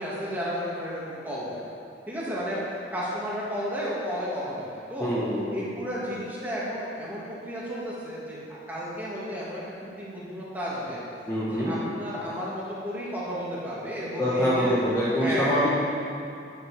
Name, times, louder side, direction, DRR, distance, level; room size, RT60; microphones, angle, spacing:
voice 1, 0.0-1.6 2.1-5.1 5.5-11.0 11.5-14.7 15.2-15.7, equal, 10° right, -8 dB, 2.7 m, -33 dB
voice 2, 5.0-5.7 11.3-11.8 14.2-15.7, equal, 15° left, -10 dB, 1.9 m, -25 dB
10.5 x 10.5 x 5.3 m, 2.6 s
head